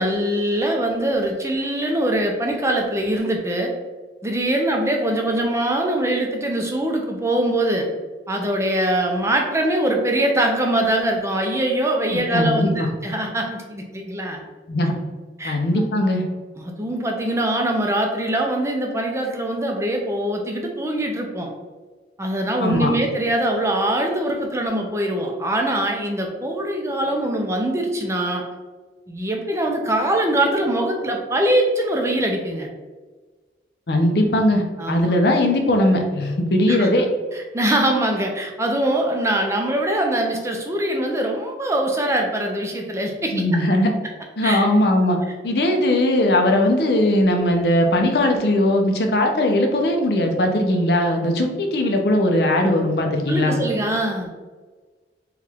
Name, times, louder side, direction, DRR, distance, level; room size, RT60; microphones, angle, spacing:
voice 1, 0.0-3.7 4.2-7.9 8.3-14.4 15.4-15.6 16.6-21.5 22.2-28.4 29.1-32.7 34.8-35.0 36.7-36.9 37.3-43.4 44.4-44.6 53.3-54.3, right 1 dB, 15° right, 1 dB, 0.5 m, -22 dB
voice 2, 12.1-12.9 14.7-14.9 15.4-16.3 22.6-22.9 33.9-37.1 43.3-43.9 44.4-45.2 45.4-53.6, left 1 dB, 65° left, 3 dB, 0.6 m, -19 dB
4.6 x 2.4 x 3.5 m, 1.3 s
head